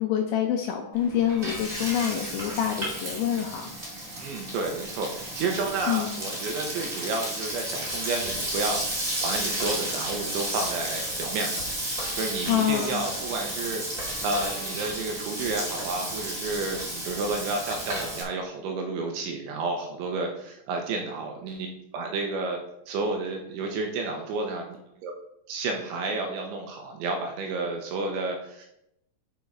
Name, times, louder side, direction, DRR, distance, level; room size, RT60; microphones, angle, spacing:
voice 1, 0.0-3.7 5.9-6.1 12.5-13.0, left 10 dB, 80° left, 3 dB, 2.7 m, -26 dB
Frying (food), 0.9-18.2, right 1 dB, 60° right, 0.8 m, -33 dB
voice 2, 4.2-11.7 12.1-13.8 14.2-21.7 21.9-22.6 22.9-24.7 25.0-25.1 25.5-28.7, right 3 dB, 75° right, 2 dB, 3.0 m, -31 dB
8.4 x 5.4 x 4.6 m, 0.79 s
omnidirectional pair, 6.0 m